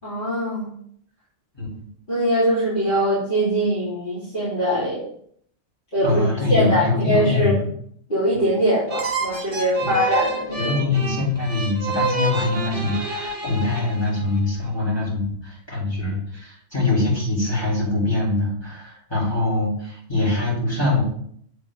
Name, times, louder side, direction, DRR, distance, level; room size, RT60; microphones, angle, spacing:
voice 1, 0.0-0.7 2.1-5.0 5.9-6.2 6.5-7.6 8.1-10.7, equal, 40° left, -12 dB, 4.3 m, -22 dB
voice 2, 1.5-1.9 6.0-7.7 9.8-10.0 10.6-21.0, left 2 dB, 20° left, -6 dB, 3.9 m, -23 dB
sound 1, 8.9-14.4, right 2 dB, 45° right, 1.5 m, -28 dB
8.4 x 7.5 x 3.8 m, 0.65 s
omnidirectional pair, 1.3 m